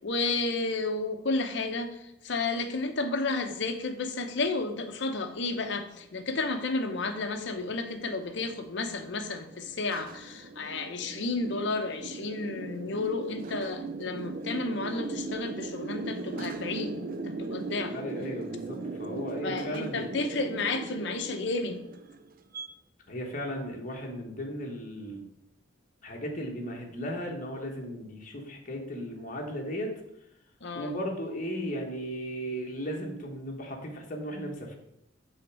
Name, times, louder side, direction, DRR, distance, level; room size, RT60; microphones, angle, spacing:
voice 1, 0.0-17.0 17.2-18.0 19.4-21.8 30.6-31.0, left 3 dB, 60° left, 6 dB, 0.7 m, -32 dB
sound 1, 6.6-22.7, right 3 dB, 45° right, 0.4 m, -39 dB
voice 2, 17.9-20.3 23.1-25.2 26.0-29.9 30.7-34.7, equal, 40° left, 1 dB, 1.3 m, -36 dB
6.5 x 3.6 x 6.1 m, 0.82 s
head